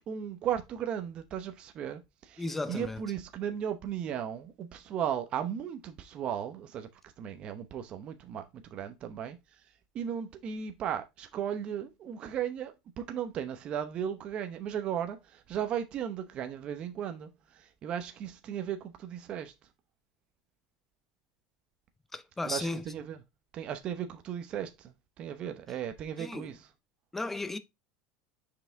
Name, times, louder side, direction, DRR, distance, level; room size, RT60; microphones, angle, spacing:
voice 1, 0.1-6.9 7.2-9.4 9.9-17.3 17.5-19.5 22.4-23.2 23.5-26.6, right 9 dB, 40° right, 0.8 m, -36 dB
voice 2, 2.4-3.0 22.1-22.8 26.2-26.5 27.1-27.6, left 2 dB, 10° left, 0.5 m, -35 dB
5.7 x 4.8 x 3.4 m
supercardioid pair, 135°, 3 cm